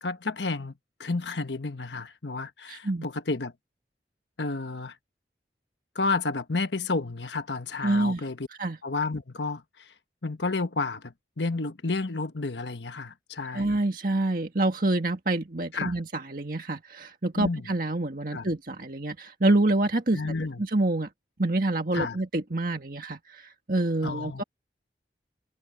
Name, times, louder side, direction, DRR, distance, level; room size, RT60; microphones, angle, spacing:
voice 1, 0.0-0.7 1.0-3.5 4.4-4.9 5.9-8.5 8.8-9.6 10.2-13.7 15.7-15.9 17.3-17.6 18.3-18.5 20.1-20.6 21.9-22.2 24.0-24.4, left 3 dB, 80° left, 1.2 m, -31 dB
voice 2, 2.7-3.1 7.8-8.2 8.6-8.8 13.5-20.2 20.6-21.1 21.4-24.4, right 2 dB, 50° right, 1.8 m, -27 dB
head